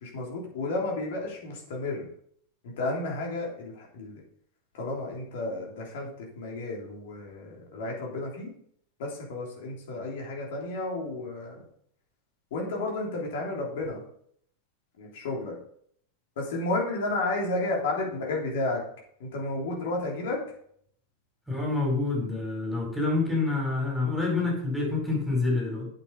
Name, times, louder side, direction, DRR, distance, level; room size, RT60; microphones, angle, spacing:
voice 1, 0.0-2.1 2.6-4.2 4.7-8.5 9.0-11.6 12.5-14.0 15.0-15.6 16.4-18.8 19.2-20.4, left 2 dB, 55° left, -1 dB, 3.3 m, -32 dB
voice 2, 21.5-25.9, left 3 dB, ahead, -2 dB, 4.8 m, -27 dB
8.4 x 7.2 x 5.3 m, 0.65 s
figure-of-eight pair, 90°, 0 cm